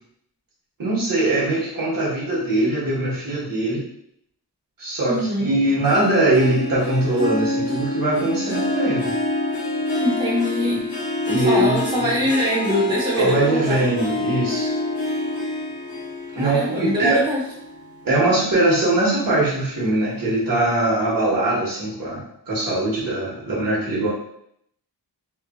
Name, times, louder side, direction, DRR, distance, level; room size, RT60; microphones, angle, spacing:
voice 1, 0.8-3.9 4.8-9.1 11.3-12.1 13.1-14.7 16.3-17.3 18.0-24.1, right 1 dB, 55° right, -6 dB, 1.2 m, -21 dB
voice 2, 5.1-5.5 10.0-10.9 11.5-13.9 16.3-17.4, equal, 10° right, -4 dB, 0.4 m, -23 dB
Harp, 5.8-18.6 19.0-19.4 19.9-20.0, left 2 dB, 55° left, 1.1 m, -27 dB
3.1 x 2.4 x 2.4 m, 0.72 s
wide cardioid pair, 150°, 41 cm